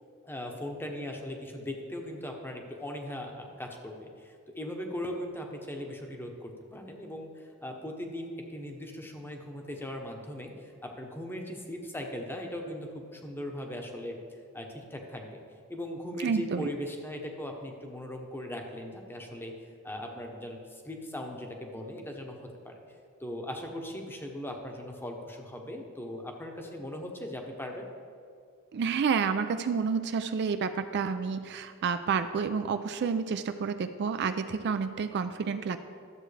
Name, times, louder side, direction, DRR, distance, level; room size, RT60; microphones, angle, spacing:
voice 1, 0.2-14.2 14.5-15.4 15.7-19.5 19.8-22.7 23.2-27.9, left 1 dB, 10° left, 2 dB, 0.9 m, -39 dB
voice 2, 16.2-16.7 28.7-35.8, right 6 dB, 50° right, 10 dB, 0.3 m, -29 dB
12.5 x 7.4 x 3.3 m, 2.3 s
head